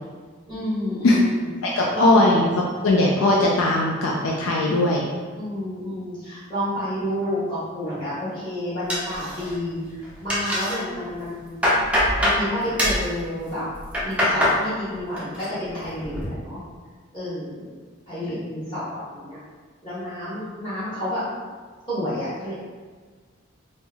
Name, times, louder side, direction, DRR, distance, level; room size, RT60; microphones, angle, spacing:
voice 1, 0.5-2.1 5.4-11.6 12.2-13.6 14.0-16.6 17.1-17.7 18.1-19.4 19.8-21.2 21.9-22.5, equal, 25° left, -13 dB, 1.5 m, -30 dB
voice 2, 1.6-5.0, left 2 dB, 75° left, -3 dB, 0.4 m, -19 dB
sound 1, 8.9-9.7 10.0-10.8 11.2-12.4 12.8-13.1 13.7-14.6 15.0-15.5 15.8-16.3, equal, 5° right, 0.5 m, -23 dB
3.5 x 2.0 x 3.3 m, 1.5 s
head